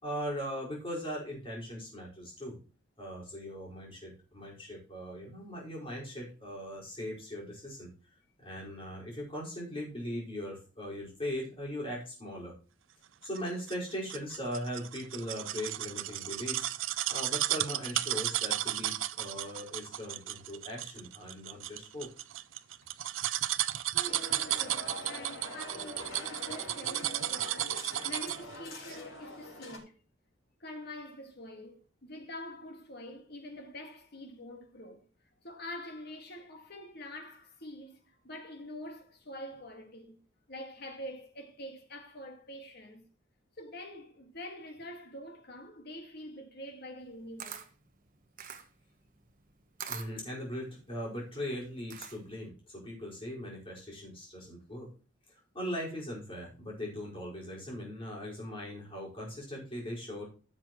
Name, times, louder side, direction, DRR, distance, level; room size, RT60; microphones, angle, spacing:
voice 1, 0.0-2.6 3.0-7.9 8.4-12.5 13.2-16.7 17.1-22.1 49.9-54.9 55.5-60.2, equal, 30° left, 4.9 m, -39 dB
sound 1, 13.4-28.5 28.9-29.0, right 14 dB, 75° right, 0.5 m, -34 dB
voice 2, 23.9-30.0 30.6-35.1 35.4-40.2 40.5-43.0 43.6-47.6, left 1 dB, 55° left, 1.9 m, -45 dB
sound 2, 24.1-29.8, left 2 dB, 85° left, 4.7 m, -45 dB
Camera, 47.0-52.5, right 8 dB, 45° right, 1.1 m, -46 dB
14.5 x 7.4 x 3.1 m
head